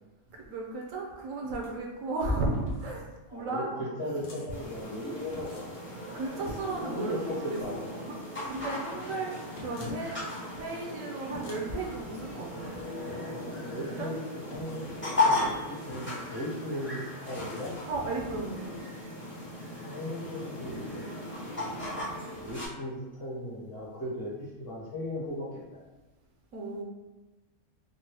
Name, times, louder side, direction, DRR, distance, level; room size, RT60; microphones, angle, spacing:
voice 1, 0.3-3.7 6.1-10.2 10.6-12.7 14.0-14.1 17.9-18.7 26.5-26.8, right 2 dB, 70° right, 0 dB, 0.9 m, -34 dB
sound 1, 1.4-1.8 2.5-2.9 4.2-4.5 5.3-5.8 9.5-10.0 11.3-11.6 13.0-13.5 14.5-14.9 15.9-16.4 17.3-17.8, left 1 dB, 75° left, 1.2 m, -45 dB
voice 2, 3.3-5.7 6.8-8.0 13.6-17.7 19.8-21.1 21.6-21.7 22.4-25.8, equal, 50° left, -7 dB, 0.9 m, -37 dB
sound 2, 4.5-22.7, left 2 dB, 15° left, 0.4 m, -36 dB
3.7 x 2.0 x 2.8 m, 1.1 s
omnidirectional pair, 1.5 m